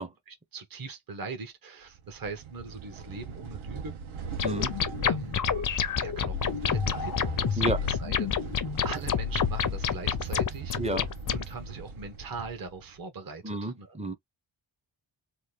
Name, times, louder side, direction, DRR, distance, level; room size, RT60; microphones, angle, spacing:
voice 1, 0.3-3.9 5.0-5.4 6.0-14.0, right 4 dB, 45° right, 0.8 m, -41 dB
sound 1, 1.9-13.0, right 5 dB, 75° right, 0.7 m, -39 dB
sound 2, 4.4-11.4, left 8 dB, 45° left, 0.4 m, -28 dB
voice 2, 13.4-14.1, right 2 dB, 15° right, 0.4 m, -30 dB
2.9 x 2.2 x 3.2 m
wide cardioid pair, 135°, 49 cm